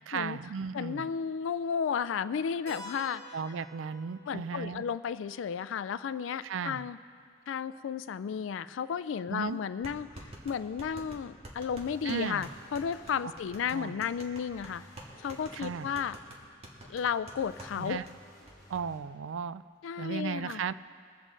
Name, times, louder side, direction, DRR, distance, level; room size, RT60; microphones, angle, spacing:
voice 1, 0.1-1.1 3.3-4.8 6.4-6.9 9.3-9.6 12.0-12.4 13.7-14.0 15.5-15.9 17.8-18.1 18.7-19.6 20.0-20.7, right 6 dB, 75° right, 15 dB, 0.4 m, -35 dB
voice 2, 0.7-3.4 4.3-7.0 7.5-14.8 15.2-16.2 16.9-18.0 19.8-20.6, left 7 dB, 70° left, 15 dB, 0.3 m, -33 dB
Keyboard (musical), 2.7-7.1, right 1 dB, 50° right, 3.3 m, -51 dB
sound 1, 8.9-9.0 9.8-17.8 18.1-18.2 18.5-18.8, right 1 dB, 30° right, 1.7 m, -48 dB
sound 2, 11.8-13.3 14.5-16.1 17.3-19.0, equal, 15° left, 4.0 m, -55 dB
22.5 x 8.3 x 3.9 m, 2.1 s
head